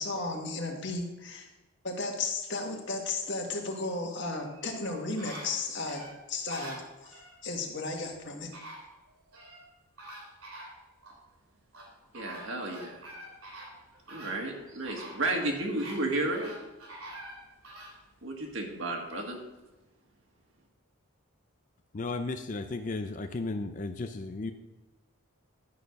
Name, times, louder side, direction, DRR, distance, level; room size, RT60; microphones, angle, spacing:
voice 1, 0.0-1.5 1.8-6.0 6.3-8.5, left 3 dB, 50° left, 2 dB, 1.7 m, -34 dB
sound 1, 4.5-7.4 8.1-8.2 8.5-9.7 10.0-11.2 11.7-18.0 18.5-18.6, right 1 dB, 80° right, 3.1 m, -46 dB
voice 2, 12.1-13.0 14.1-16.5 18.2-19.4, right 2 dB, 60° right, 1 dB, 1.9 m, -32 dB
voice 3, 21.9-24.5, left 3 dB, 35° left, 8 dB, 0.4 m, -34 dB
11.5 x 6.6 x 5.3 m, 1.0 s
head